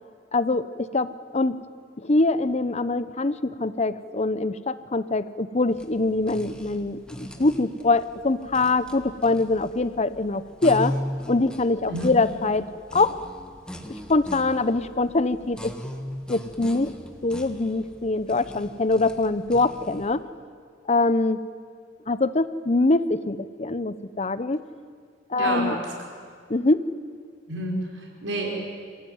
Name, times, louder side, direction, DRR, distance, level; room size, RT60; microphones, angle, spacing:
voice 1, 0.3-0.7 0.9-1.6 2.0-10.9 11.3-12.6 12.9-13.2 14.1-15.7 16.3-16.9 17.2-20.2 20.9-21.4 22.1-24.6 25.3-25.7 26.5-26.8, left 3 dB, 35° left, 14 dB, 0.8 m, -23 dB
sound 1, 5.7-20.1, equal, 5° left, 1.5 m, -38 dB
voice 2, 11.8-12.1 25.3-25.8 27.5-28.5, right 1 dB, 85° right, 0 dB, 5.8 m, -29 dB
27.5 x 16.0 x 9.4 m, 2.1 s
head